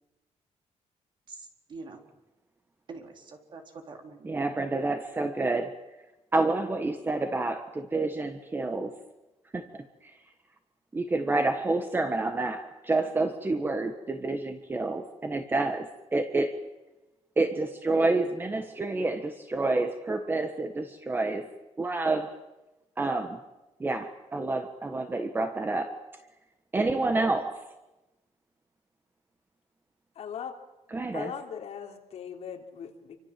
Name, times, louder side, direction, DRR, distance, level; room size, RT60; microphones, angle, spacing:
voice 1, 1.3-2.0 2.9-4.5, right 3 dB, 40° right, 4 dB, 4.0 m, -45 dB
voice 2, 4.2-5.7 6.3-8.9 9.5-9.9 10.9-16.6 17.4-21.5 21.8-22.3 23.0-23.4 23.8-25.9 26.7-27.5 30.9-31.3, right 2 dB, 15° right, 7 dB, 1.5 m, -28 dB
voice 3, 30.2-30.6 31.1-33.2, left 7 dB, 60° left, 2 dB, 3.7 m, -39 dB
27.5 x 25.5 x 7.6 m, 1.0 s
wide cardioid pair, 180°, 12 cm